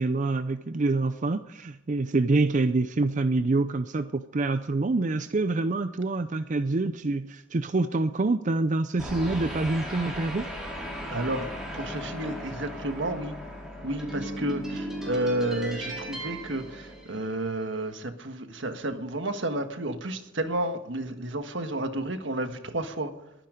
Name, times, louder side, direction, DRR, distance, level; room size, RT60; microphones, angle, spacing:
voice 1, 0.0-10.5, right 3 dB, 40° right, 0.5 m, -26 dB
sound 1, 9.0-17.5, equal, 5° right, 4.8 m, -36 dB
voice 2, 11.1-13.4 13.8-23.1, right 1 dB, 75° right, 1.6 m, -31 dB
22.0 x 10.0 x 5.1 m
head